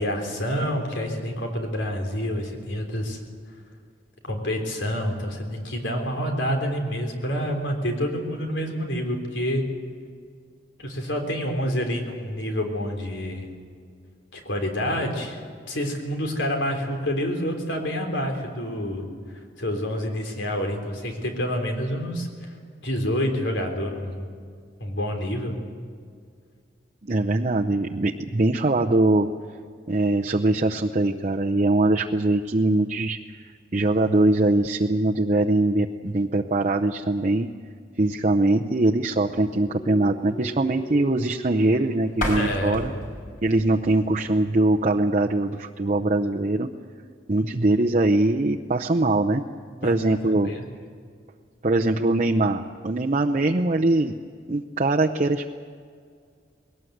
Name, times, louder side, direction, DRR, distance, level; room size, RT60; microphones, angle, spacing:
voice 1, 0.0-3.2 4.2-9.6 10.8-13.5 14.3-15.4 15.7-19.0 19.6-22.5 22.8-24.3 24.8-25.6 42.3-42.8 49.8-50.0 50.3-50.6, equal, 90° left, 4 dB, 3.6 m, -28 dB
voice 2, 27.0-29.3 29.9-33.2 33.7-37.5 38.0-42.9 43.4-46.7 47.3-49.4 49.8-50.5 51.6-54.1 54.5-55.5, right 2 dB, 40° right, 1 dB, 0.7 m, -22 dB
sound 1, 39.5-43.4, left 1 dB, 20° left, 1.6 m, -39 dB
sound 2, 42.1-45.0, left 1 dB, 50° left, 4.8 m, -34 dB
21.0 x 18.5 x 7.9 m, 2.1 s
head